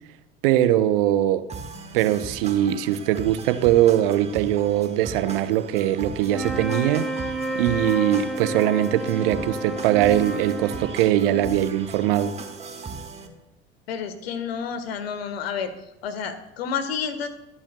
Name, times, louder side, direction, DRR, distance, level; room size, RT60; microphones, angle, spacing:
voice 1, 0.4-1.4 1.9-7.1 7.5-12.3, right 12 dB, 60° right, 0.8 m, -21 dB
sound 1, 1.5-13.3, right 4 dB, 20° right, 1.6 m, -38 dB
sound 2, 6.2-11.7, right 1 dB, ahead, 1.4 m, -31 dB
voice 2, 13.9-15.7 16.0-17.3, left 7 dB, 70° left, 1.4 m, -30 dB
23.0 x 9.8 x 2.2 m
figure-of-eight pair, 65°, 32 cm